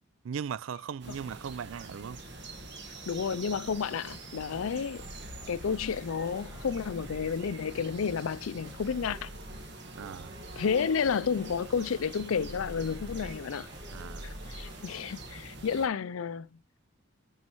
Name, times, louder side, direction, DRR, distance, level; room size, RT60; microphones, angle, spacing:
voice 1, 0.2-2.2 10.0-10.4 13.9-14.3, right 7 dB, 70° right, 0.4 m, -38 dB
sound 1, 1.0-15.9, right 2 dB, 55° right, 1.6 m, -45 dB
voice 2, 3.1-5.0 5.5-9.3 10.6-13.7 14.2-16.5, left 6 dB, 85° left, 0.4 m, -31 dB
sound 2, 4.0-15.3, equal, 20° right, 3.1 m, -48 dB
9.5 x 5.5 x 3.1 m
head